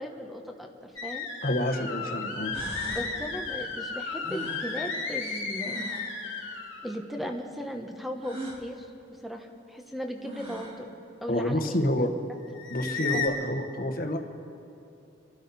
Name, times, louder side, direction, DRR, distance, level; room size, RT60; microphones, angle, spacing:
voice 1, 0.0-1.3 2.9-5.9 6.8-10.9 11.2-11.8 13.1-13.3, equal, ahead, 3 dB, 1.1 m, -37 dB
sound 1, 1.0-7.0 12.5-13.3, left 4 dB, 85° left, 2.4 m, -34 dB
sound 2, 1.0-1.1 2.1-2.2 2.5-3.1 4.2-6.2 8.2-8.6 9.9-10.0 10.2-10.9, right 1 dB, 30° right, 2.2 m, -41 dB
voice 2, 1.4-2.6 11.3-12.1 12.7-14.2, left 1 dB, 50° left, 4 dB, 1.3 m, -28 dB
27.5 x 12.0 x 4.2 m, 2.7 s
head